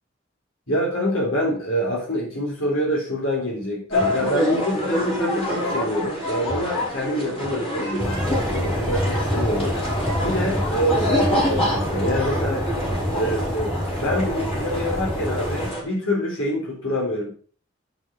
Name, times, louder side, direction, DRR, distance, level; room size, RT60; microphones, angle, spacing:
voice 1, 0.7-9.8 10.2-12.7 13.1-17.3, equal, 85° left, -3 dB, 3.8 m, -26 dB
sound 1, 3.9-15.8, left 1 dB, 30° left, 5.3 m, -26 dB
sound 2, 8.0-15.7, equal, 5° left, 4.3 m, -27 dB
8.0 x 7.7 x 6.0 m, 0.42 s
head